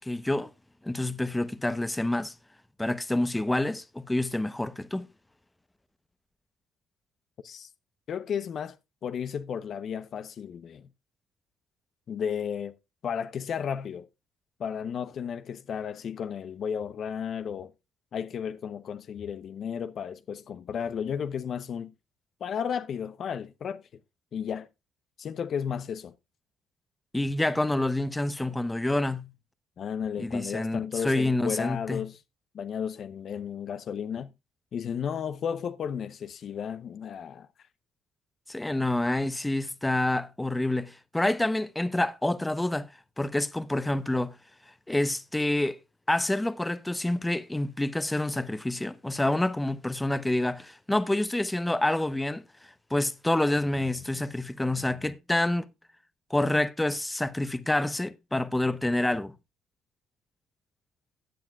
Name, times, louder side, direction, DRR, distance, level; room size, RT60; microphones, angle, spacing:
voice 1, 0.0-0.5 0.8-2.3 2.8-5.1 27.1-29.3 30.2-32.0 38.5-42.9 43.2-44.4 44.9-45.8 46.1-52.4 52.9-55.6 56.3-59.3, left 1 dB, 10° left, 0.8 m, -27 dB
voice 2, 8.1-8.8 9.0-10.9 12.1-12.7 13.0-14.1 14.6-17.7 18.1-21.9 22.4-23.8 24.3-24.7 25.2-26.1 29.8-32.2 32.5-34.3 34.7-37.5, left 7 dB, 55° left, 0.7 m, -33 dB
15.5 x 8.9 x 2.3 m
supercardioid pair, 65°, 0 cm